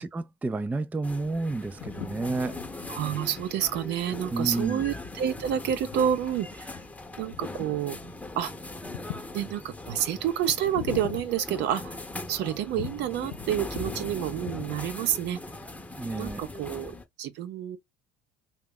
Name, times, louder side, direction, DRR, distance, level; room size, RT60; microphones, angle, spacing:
voice 1, 0.0-2.6 4.3-4.8 16.0-16.4, right 3 dB, 10° right, 0.4 m, -30 dB
sound 1, 1.0-17.1, left 2 dB, 5° left, 0.8 m, -40 dB
sound 2, 1.8-12.2 12.7-14.1 14.3-15.2, left 13 dB, 85° left, 0.4 m, -43 dB
voice 2, 2.9-6.7 7.2-8.0 8.4-8.5 9.3-11.9 12.3-15.4 16.1-17.8, right 10 dB, 60° right, 0.6 m, -29 dB
2.9 x 2.3 x 3.6 m
hypercardioid pair, 80°, 20 cm